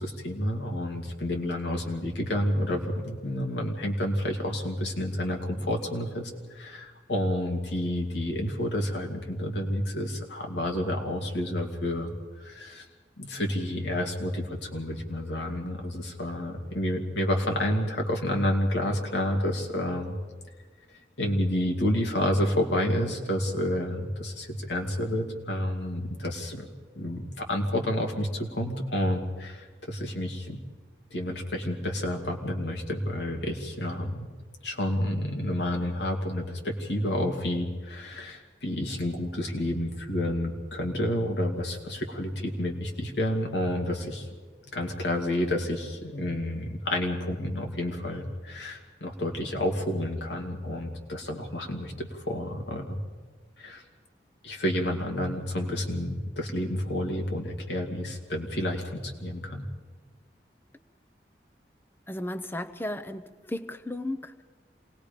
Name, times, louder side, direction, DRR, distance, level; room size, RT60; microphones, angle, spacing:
voice 1, 0.0-12.1 12.4-12.9 13.2-20.2 21.2-26.7 27.0-30.6 31.1-34.3 34.6-44.3 44.7-53.1 53.6-53.8 54.4-59.6, left 1 dB, 85° left, 2 dB, 2.4 m, -30 dB
voice 2, 62.1-64.4, left 1 dB, 10° left, 10 dB, 0.7 m, -35 dB
27.0 x 19.0 x 5.2 m, 1.4 s
head